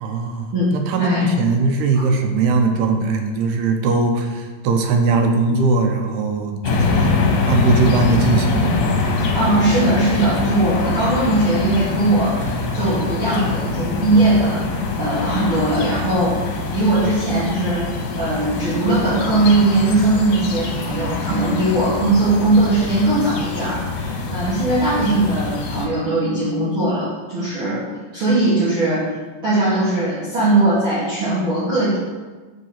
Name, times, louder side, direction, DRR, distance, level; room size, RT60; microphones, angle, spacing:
voice 1, 0.0-7.2 7.5-8.7, right 3 dB, 75° right, 4 dB, 2.0 m, -20 dB
sound 1, 6.6-25.9, left 3 dB, 70° left, 1.9 m, -23 dB
voice 2, 9.3-16.4 16.7-29.1 29.4-32.0, right 2 dB, 50° right, -10 dB, 1.8 m, -19 dB
5.5 x 4.8 x 5.7 m, 1.3 s
omnidirectional pair, 3.9 m